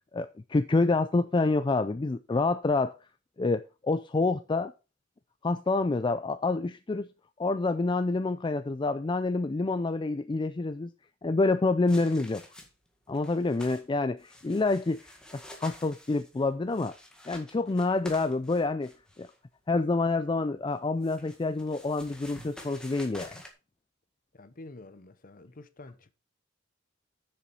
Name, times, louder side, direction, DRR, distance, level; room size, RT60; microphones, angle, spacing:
voice 1, 0.1-2.9 3.4-4.7 5.4-7.1 7.4-10.9 11.2-12.4 13.1-15.0 15.3-17.0 17.3-18.9 19.2-19.3 19.7-23.4, left 3 dB, 25° left, 0.4 m, -27 dB
sound 1, 11.9-12.9 13.1-13.8 14.2-19.4 20.7-23.5, left 1 dB, 5° left, 1.8 m, -49 dB
voice 2, 24.3-26.1, left 2 dB, 45° left, 0.9 m, -48 dB
7.5 x 6.9 x 5.4 m
head